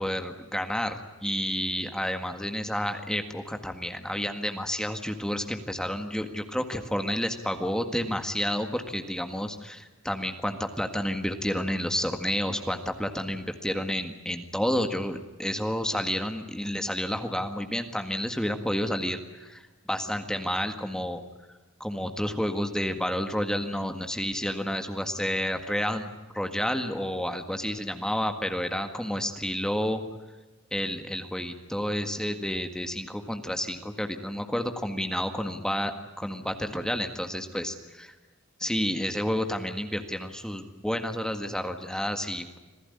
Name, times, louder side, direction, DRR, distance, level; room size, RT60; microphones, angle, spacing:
voice 1, 0.0-21.2 21.8-30.0 30.7-38.1 38.6-42.6, equal, 5° left, 6 dB, 1.7 m, -30 dB
27.0 x 16.5 x 9.8 m, 1.2 s
head